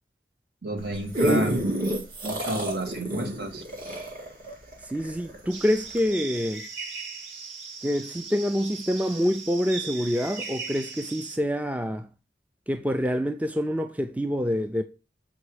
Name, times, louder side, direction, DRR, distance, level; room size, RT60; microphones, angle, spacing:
voice 1, 0.6-3.6, right 1 dB, 65° right, 2.1 m, -31 dB
sound 1, 0.8-5.4 6.0-6.1, right 1 dB, 50° right, 2.2 m, -28 dB
voice 2, 4.8-6.7 7.8-12.1 12.7-14.8, equal, 10° right, 0.4 m, -26 dB
sound 2, 5.5-11.4, right 5 dB, 90° right, 1.1 m, -38 dB
7.2 x 4.6 x 4.9 m
head